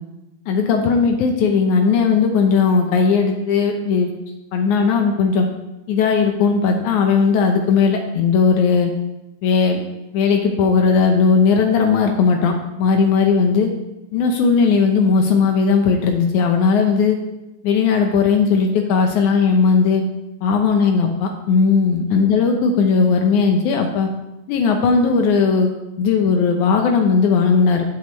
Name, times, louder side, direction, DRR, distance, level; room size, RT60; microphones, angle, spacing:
voice 1, 0.5-4.1 4.5-5.5 5.9-8.9 9.4-9.8 10.1-13.7 14.1-17.2 17.6-20.0 20.4-24.1 24.5-25.7 26.0-27.9, left 5 dB, 80° left, 3 dB, 2.3 m, -17 dB
14.0 x 8.3 x 3.1 m, 0.96 s
omnidirectional pair, 3.5 m